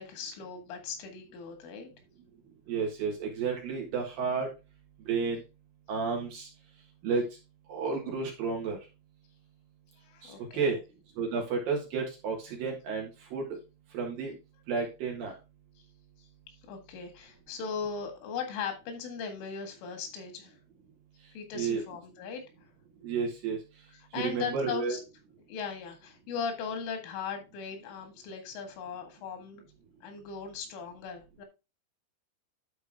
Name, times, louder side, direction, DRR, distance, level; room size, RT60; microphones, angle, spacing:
voice 1, 0.0-1.9 10.1-10.8 16.7-20.5 21.4-22.4 24.1-25.0 25.5-29.6 30.0-31.5, left 6 dB, 85° left, 6 dB, 4.3 m, -38 dB
voice 2, 2.7-4.5 5.1-5.4 5.9-6.5 7.0-7.3 7.7-8.8 10.2-10.8 11.2-13.5 13.9-14.4 14.7-15.3 21.5-21.8 23.0-23.6 24.1-25.0, right 5 dB, 60° right, 0 dB, 2.9 m, -31 dB
11.5 x 4.4 x 3.5 m, 0.27 s
omnidirectional pair, 5.4 m